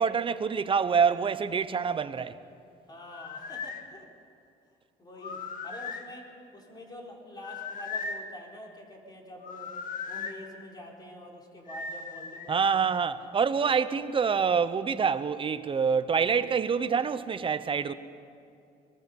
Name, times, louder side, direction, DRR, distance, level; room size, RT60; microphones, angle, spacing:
voice 1, 0.0-2.4 12.5-17.9, right 6 dB, 30° right, 0.8 m, -26 dB
voice 2, 2.9-4.1 5.0-6.3 6.5-9.7 10.1-12.7, left 1 dB, 25° left, 3.8 m, -46 dB
sound 1, 3.0-3.8 5.2-6.1 7.4-8.3 9.4-10.4 11.7-12.6, left 5 dB, 50° left, 1.6 m, -37 dB
23.5 x 21.0 x 5.5 m
cardioid pair, 110°, 17 cm